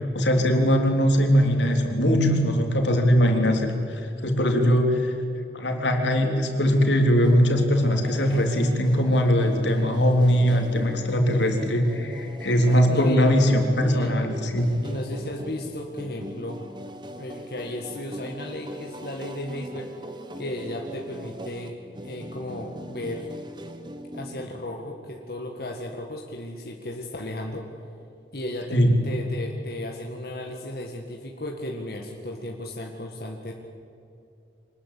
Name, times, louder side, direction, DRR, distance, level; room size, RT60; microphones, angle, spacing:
voice 1, 0.1-5.2 5.5-14.7 28.7-28.9, equal, 80° left, 3 dB, 3.5 m, -21 dB
sound 1, 7.2-24.7, equal, 25° right, 1.5 m, -40 dB
voice 2, 12.9-13.3 13.8-14.2 14.8-16.6 17.2-19.9 20.4-21.8 22.0-23.3 24.1-27.7 28.3-33.5, left 1 dB, 55° left, 1 dB, 1.9 m, -34 dB
25.0 x 20.0 x 8.5 m, 2.7 s
head